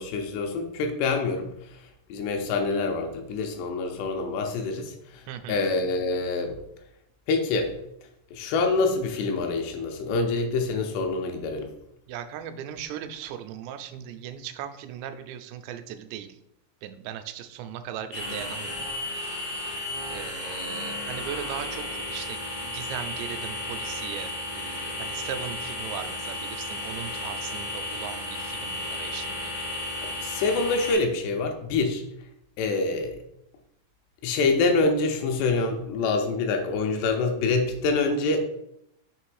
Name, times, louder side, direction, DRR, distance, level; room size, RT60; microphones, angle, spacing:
voice 1, 0.0-1.5 2.1-6.6 7.3-7.7 8.3-11.7 30.0-32.0 32.6-33.2 34.2-38.4, left 3 dB, 85° left, 4 dB, 2.8 m, -26 dB
voice 2, 5.3-5.7 12.1-16.4 16.8-18.9 20.1-29.5, right 9 dB, 85° right, 8 dB, 2.7 m, -38 dB
sound 1, 18.1-30.9, left 2 dB, 50° left, 0.7 m, -33 dB
6.8 x 3.1 x 4.7 m, 0.78 s
omnidirectional pair, 5.0 m